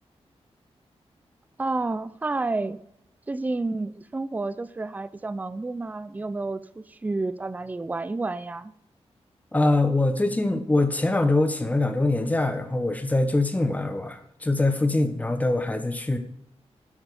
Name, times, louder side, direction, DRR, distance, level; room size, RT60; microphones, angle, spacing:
voice 1, 1.6-2.8 3.3-8.7, right 3 dB, 15° right, 14 dB, 0.4 m, -30 dB
voice 2, 9.5-16.2, left 2 dB, 15° left, 7 dB, 1.2 m, -23 dB
11.0 x 7.2 x 4.9 m, 0.76 s
wide cardioid pair, 160°, 11 cm